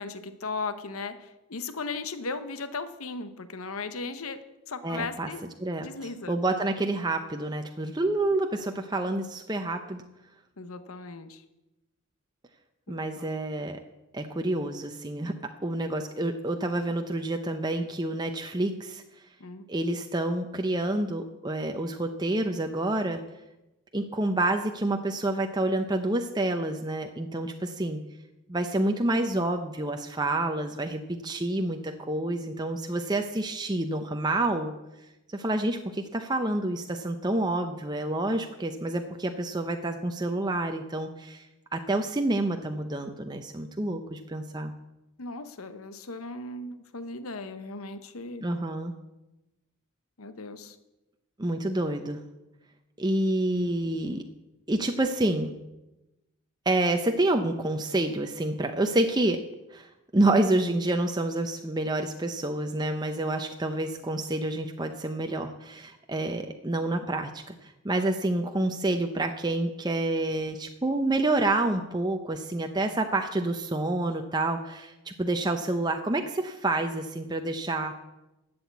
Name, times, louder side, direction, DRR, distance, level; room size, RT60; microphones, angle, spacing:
voice 1, 0.0-5.4 5.8-6.4 10.6-11.4 12.9-13.3 19.4-19.7 45.2-48.4 50.2-50.8, left 3 dB, 75° left, 11 dB, 1.0 m, -37 dB
voice 2, 4.8-5.3 5.6-5.9 6.3-10.0 12.9-13.8 14.1-15.3 15.6-19.0 19.7-23.2 23.9-28.0 28.5-34.7 35.3-44.7 48.4-49.0 51.4-52.2 53.0-54.2 54.7-55.5 56.7-59.4 59.7-77.9, right 2 dB, 20° right, 5 dB, 0.7 m, -28 dB
12.0 x 7.9 x 8.3 m, 0.98 s
head